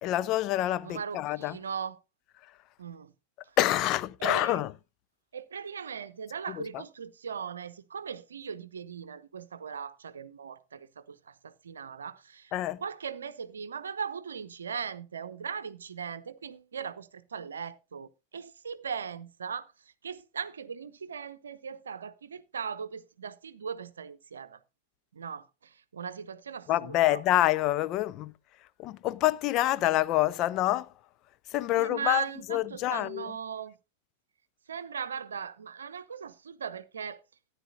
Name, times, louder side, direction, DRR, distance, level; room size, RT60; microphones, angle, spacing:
voice 1, 0.0-1.6 3.6-4.7 6.5-6.6 12.5-12.8 26.7-28.3 28.8-30.9 31.5-33.3, left 15 dB, 40° left, 0.5 m, -27 dB
voice 2, 0.8-2.0 2.8-3.1 4.2-4.6 5.3-12.5 12.8-19.7 20.0-24.6 25.1-27.2 31.7-33.7 34.7-37.2, right 6 dB, 70° right, 0.7 m, -39 dB
14.0 x 9.8 x 2.7 m
figure-of-eight pair, 90°, 0 cm